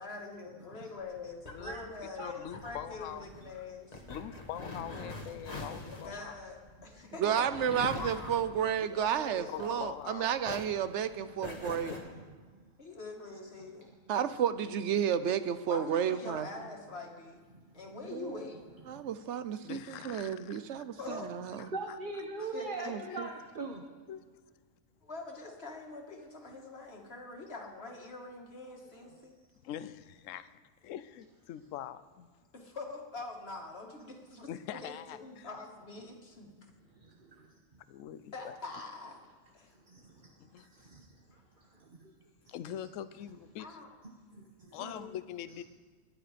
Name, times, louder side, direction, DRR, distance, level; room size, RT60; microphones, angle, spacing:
voice 1, 0.0-4.0 5.7-7.3 7.9-8.3 8.9-9.8 12.8-13.9 15.7-17.4 17.7-18.6 21.0-21.3 22.4-22.9 25.0-29.3 32.5-34.5 34.8-34.9 35.2-36.5 38.3-39.2 39.5-39.7 41.3-41.4 43.6-43.9 44.8-45.2, left 3 dB, 50° left, 1 dB, 2.2 m, -44 dB
sound 1, 1.0-10.1 10.4-12.0, left 2 dB, 30° left, 1.6 m, -44 dB
voice 2, 1.5-1.9 2.2-3.3 3.6-3.7 4.1-6.4 7.0-7.1 7.7-8.0 9.5-10.3 19.6-20.8 21.9-22.0 23.0-23.3 24.1-24.3 29.6-30.5 30.8-32.3 34.5-35.5 37.9-38.5 40.4-40.7 42.5-43.8 44.7-45.6, left 11 dB, 75° left, 13 dB, 1.0 m, -43 dB
voice 3, 7.2-12.0 14.1-16.5 18.1-18.4 18.9-21.7 22.9-23.3, right 8 dB, 65° right, 13 dB, 1.0 m, -32 dB
voice 4, 10.9-12.2 13.6-13.9 17.5-18.0 18.9-19.0 21.7-23.8 29.0-29.1 37.0-37.5 39.7-40.3 40.6-41.2 41.7-42.1 44.0-44.8, right 3 dB, 40° right, 2 dB, 1.2 m, -43 dB
22.0 x 9.5 x 5.1 m, 1.5 s
omnidirectional pair, 1.3 m